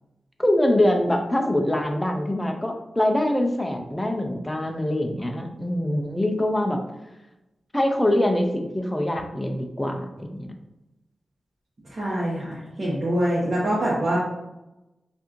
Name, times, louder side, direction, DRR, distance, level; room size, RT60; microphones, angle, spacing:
voice 1, 0.4-6.8 7.7-10.5, left 1 dB, 10° left, 3 dB, 0.4 m, -24 dB
voice 2, 11.9-14.2, right 1 dB, 35° right, -8 dB, 1.1 m, -24 dB
4.5 x 2.6 x 3.0 m, 0.96 s
wide cardioid pair, 135°, 0 cm